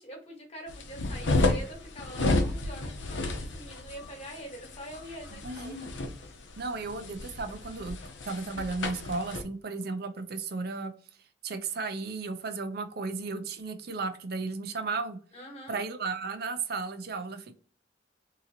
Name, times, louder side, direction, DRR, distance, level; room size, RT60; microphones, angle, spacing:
voice 1, 0.0-5.8 15.3-15.8, equal, 35° left, 1 dB, 1.3 m, -44 dB
sound 1, 0.7-9.4, left 2 dB, 75° left, 0.8 m, -31 dB
voice 2, 5.4-5.9 6.6-8.0 8.2-10.9 11.4-15.2 15.7-17.6, right 4 dB, 55° right, 7 dB, 0.6 m, -34 dB
3.8 x 2.8 x 2.8 m, 0.41 s
head